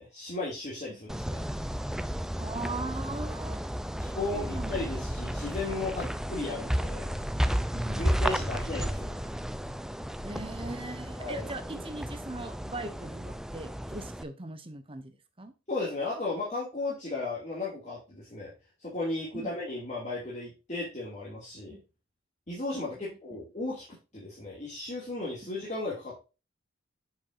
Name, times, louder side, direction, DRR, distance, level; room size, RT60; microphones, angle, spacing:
voice 1, 0.0-1.4 4.0-7.2 8.0-9.3 11.2-11.5 15.7-18.5 18.8-21.8 22.5-23.8 24.1-26.2, left 2 dB, 35° left, -6 dB, 2.5 m, -35 dB
sound 1, 1.1-14.2, equal, ahead, 0.4 m, -33 dB
voice 2, 2.4-3.7 4.3-4.8 7.7-8.1 10.2-15.5 19.3-19.5 21.7-21.8, right 2 dB, 25° right, 9 dB, 1.0 m, -40 dB
8.8 x 6.0 x 2.6 m, 0.30 s
head